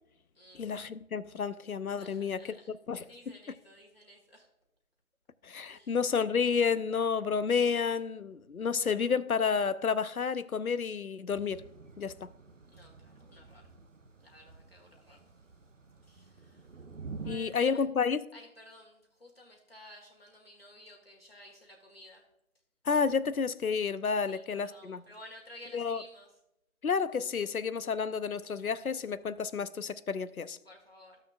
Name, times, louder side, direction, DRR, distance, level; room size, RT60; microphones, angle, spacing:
voice 1, 0.5-2.6 2.9-3.0 5.4-11.6 12.0-12.3 17.2-18.2 22.8-25.0 25.7-26.0 26.8-30.6, left 6 dB, 80° left, 0.7 m, -30 dB
voice 2, 2.0-4.5 5.7-6.0 12.7-13.7 14.2-15.2 16.0-16.7 17.2-17.9 18.3-22.2 24.3-26.3 30.6-31.2, left 1 dB, 45° left, 1.7 m, -54 dB
Thunder / Rain, 11.3-17.4, right 4 dB, 60° right, 0.9 m, -48 dB
15.0 x 6.5 x 2.4 m
figure-of-eight pair, 170°, 43 cm